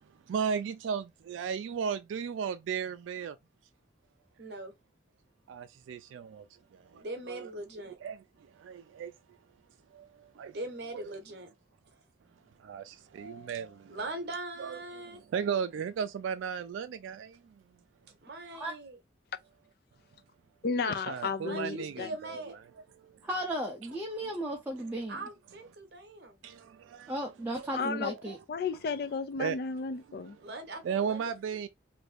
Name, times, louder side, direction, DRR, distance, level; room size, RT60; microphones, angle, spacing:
voice 1, 0.3-3.4 5.5-6.5 6.7-7.5 8.0-9.1 9.9-10.6 10.9-11.1 12.6-14.0 14.6-17.5 20.8-23.2 24.2-24.4 24.7-24.9 26.4-27.2 27.5-27.9 28.3-28.4 29.4-29.6 30.8-31.7, right 7 dB, 90° right, 0.3 m, -36 dB
voice 2, 4.4-4.7 7.0-8.0 10.5-11.5 13.9-15.2 18.2-19.0 21.4-22.6 25.1-26.4 30.4-31.3, right 2 dB, 60° right, 0.8 m, -41 dB
voice 3, 20.6-22.1 27.7-28.1 28.5-30.4, left 5 dB, 55° left, 0.4 m, -33 dB
voice 4, 23.2-25.2 27.1-28.4, right 1 dB, 10° right, 0.4 m, -35 dB
2.6 x 2.5 x 3.2 m
head